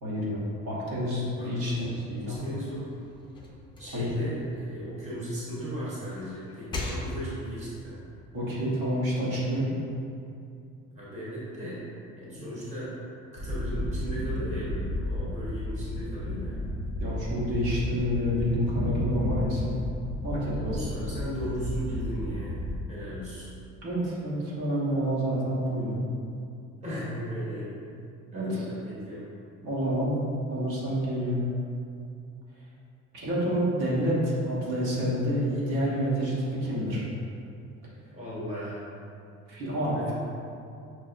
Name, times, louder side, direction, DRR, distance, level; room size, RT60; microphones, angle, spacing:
voice 1, 0.0-2.5 3.9-4.1 8.3-9.7 12.4-12.5 17.0-19.7 20.2-20.9 23.8-26.0 28.3-28.7 29.6-30.1 30.5-31.4 33.1-37.0 39.5-40.1, equal, 75° right, -7 dB, 1.1 m, -28 dB
voice 2, 1.4-1.8 2.3-3.0 3.8-8.0 10.9-11.8 12.2-12.9 13.4-16.6 20.6-22.6 22.9-23.5 26.8-27.9 28.3-29.3 33.3-33.4 38.1-38.8 39.9-40.1, equal, 25° right, -9 dB, 1.0 m, -36 dB
sound 1, 2.3-5.4 5.8-7.6, left 2 dB, 15° left, 0.4 m, -40 dB
sound 2, 13.4-22.8, left 1 dB, 55° right, 1.0 m, -32 dB
6.1 x 2.0 x 2.5 m, 2.5 s
cardioid pair, 150°, 30 cm